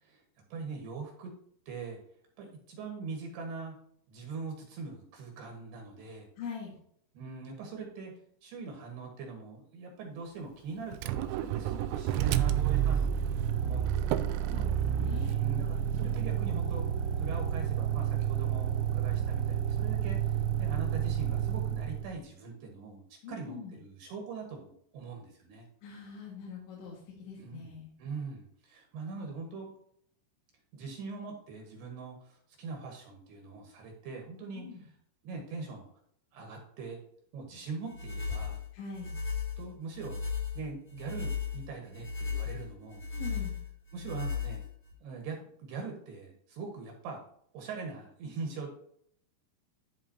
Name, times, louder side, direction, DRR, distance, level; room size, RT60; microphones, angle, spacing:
voice 1, 0.5-1.3 1.7-2.0 2.4-3.8 4.1-6.3 7.1-8.1 8.4-14.2 15.4-16.9 17.2-25.7 27.3-29.7 30.7-34.7 35.2-35.9 36.3-37.0 37.3-38.6 39.6-40.2 40.5-43.0 43.9-44.6 45.0-47.2 47.5-48.7, right 4 dB, 70° right, 1 dB, 3.2 m, -42 dB
voice 2, 6.4-6.7 14.5-15.5 23.2-23.7 25.8-27.9 34.5-34.8 38.7-39.2 43.1-43.6, left 5 dB, 75° left, -4 dB, 4.0 m, -43 dB
Motor vehicle (road), 10.9-22.1, right 9 dB, 85° right, 2.8 m, -30 dB
sound 1, 37.9-44.9, left 5 dB, 30° left, 2.1 m, -36 dB
13.0 x 5.4 x 2.8 m, 0.66 s
omnidirectional pair, 5.3 m